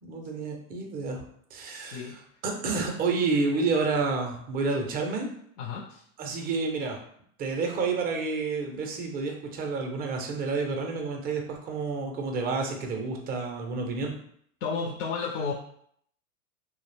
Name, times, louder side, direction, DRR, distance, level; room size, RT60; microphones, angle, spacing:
voice 1, 0.0-1.2 1.5-5.3 6.2-7.0 7.4-14.2, right 4 dB, 25° right, 2 dB, 0.4 m, -29 dB
voice 2, 1.7-2.1 5.6-6.0 14.6-15.5, left 5 dB, 65° left, 1 dB, 0.5 m, -32 dB
2.3 x 2.0 x 3.2 m, 0.66 s
hypercardioid pair, 110°, 42 cm